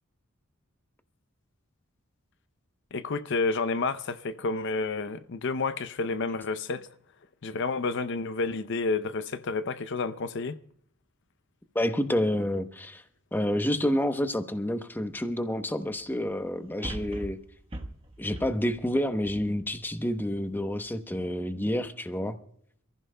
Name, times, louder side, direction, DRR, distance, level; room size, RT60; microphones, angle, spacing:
voice 1, 2.9-6.9 7.4-10.6, left 3 dB, 60° left, 0.6 m, -30 dB
voice 2, 11.7-13.0 13.3-17.4 18.2-22.4, left 1 dB, 10° left, 0.8 m, -29 dB
sound 1, 15.1-15.2 16.8-20.1 20.6-20.7, right 1 dB, 25° right, 1.1 m, -40 dB
27.5 x 15.0 x 2.2 m
head